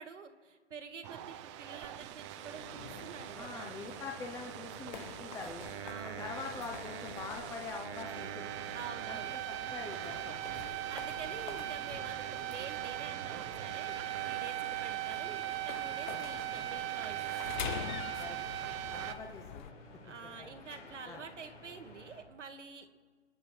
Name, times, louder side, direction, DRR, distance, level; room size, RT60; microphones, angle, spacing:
voice 1, 0.0-3.8 5.8-6.3 8.7-9.3 10.9-17.7 20.0-22.9, right 5 dB, 80° right, 6 dB, 1.7 m, -48 dB
sound 1, 1.0-19.2, right 13 dB, 25° right, 0.7 m, -40 dB
sound 2, 2.3-22.2, left 2 dB, 85° left, 4.9 m, -54 dB
sound 3, 2.8-19.7, left 10 dB, 40° left, 0.6 m, -48 dB
voice 2, 3.3-5.7 6.2-8.5 9.1-10.4 17.8-18.4 18.9-20.5 21.1-21.2, left 4 dB, 10° left, 3 dB, 0.8 m, -45 dB
26.5 x 9.7 x 4.6 m, 1.5 s
hypercardioid pair, 135°, 36 cm